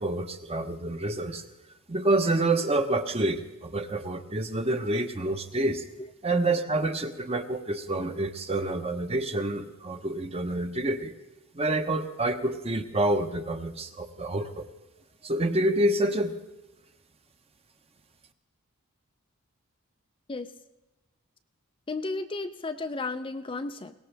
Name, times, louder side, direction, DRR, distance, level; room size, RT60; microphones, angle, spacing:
voice 1, 0.0-1.4 1.9-5.8 6.2-11.1 11.5-14.7 15.2-16.3, right 2 dB, 30° right, 7 dB, 0.9 m, -27 dB
voice 2, 21.9-23.9, left 3 dB, 25° left, 8 dB, 0.5 m, -33 dB
21.5 x 18.0 x 3.4 m, 1.1 s
head